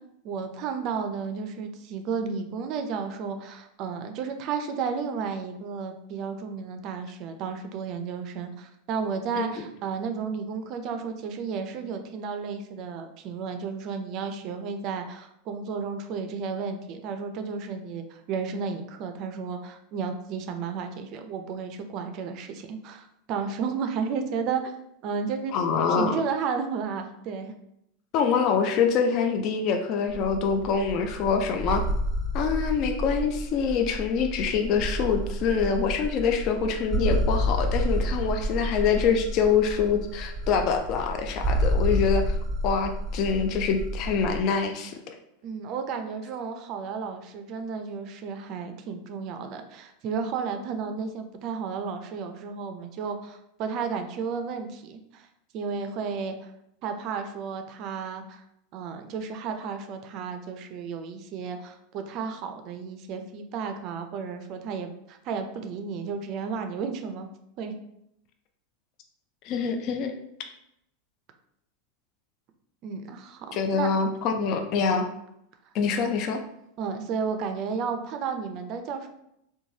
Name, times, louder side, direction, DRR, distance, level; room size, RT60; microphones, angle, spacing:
voice 1, 0.2-24.7 25.0-25.5 25.9-27.5 45.4-55.3 55.5-56.5 56.8-58.4 58.7-67.3 67.6-67.7 72.8-73.9 76.8-79.1, right 5 dB, 50° right, 6 dB, 0.3 m, -33 dB
voice 2, 25.5-26.2 28.1-31.8 32.3-42.4 42.6-45.1 69.4-70.1 73.5-75.1 75.7-76.4, left 6 dB, 50° left, 5 dB, 0.3 m, -25 dB
sound 1, 30.1-44.4, equal, 15° right, 0.6 m, -29 dB
3.0 x 2.2 x 2.7 m, 0.78 s
hypercardioid pair, 105°, 0 cm